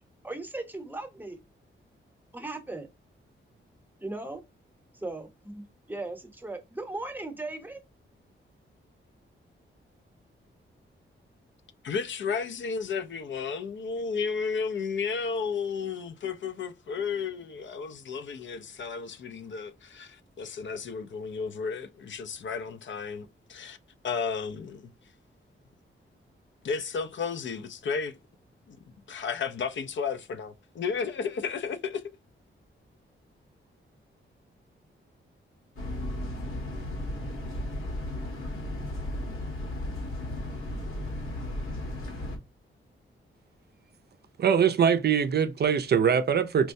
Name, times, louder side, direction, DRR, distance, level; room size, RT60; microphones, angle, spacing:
voice 1, 0.2-1.4 2.3-2.9 4.0-4.4 4.9-7.8, right 2 dB, 10° right, 0.7 m, -37 dB
voice 2, 11.8-23.8 24.0-24.9 26.6-28.2 28.7-28.8 29.1-32.0, left 5 dB, 65° left, 0.5 m, -33 dB
sound 1, 35.8-42.4, left 1 dB, 80° left, 1.3 m, -34 dB
voice 3, 44.4-46.7, right 7 dB, 50° right, 0.4 m, -23 dB
4.4 x 2.1 x 2.6 m
wide cardioid pair, 120°, 21 cm